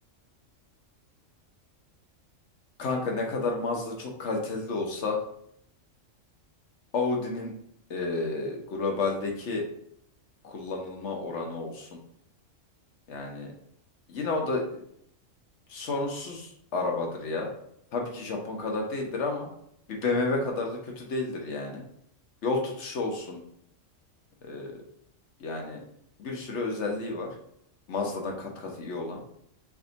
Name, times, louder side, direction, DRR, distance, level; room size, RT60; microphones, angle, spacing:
voice 1, 2.8-5.2 6.9-7.5 7.9-9.7 10.4-11.9 13.1-13.5 14.1-14.6 15.7-17.5 17.9-19.5 19.9-21.8 22.4-23.4 24.4-24.8 25.4-25.8 26.2-27.3 27.9-29.2, left 3 dB, 65° left, 1 dB, 1.1 m, -31 dB
3.4 x 2.6 x 3.8 m, 0.71 s
omnidirectional pair, 1.3 m